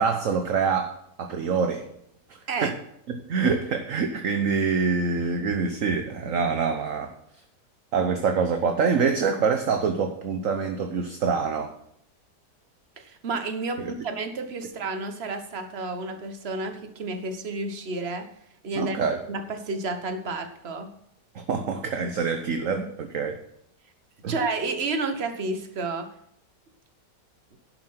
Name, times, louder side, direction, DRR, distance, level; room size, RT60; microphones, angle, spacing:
voice 1, 0.0-1.9 2.6-2.7 3.1-7.1 7.9-11.7 13.8-13.9 18.7-19.2 21.3-23.4 24.2-24.3, right 5 dB, 55° right, 6 dB, 1.2 m, -25 dB
voice 2, 13.0-18.2 18.6-19.0 19.3-20.9 24.3-26.1 27.5-27.6, right 3 dB, 40° right, 7 dB, 1.4 m, -31 dB
11.0 x 7.7 x 5.8 m, 0.72 s
omnidirectional pair, 1.9 m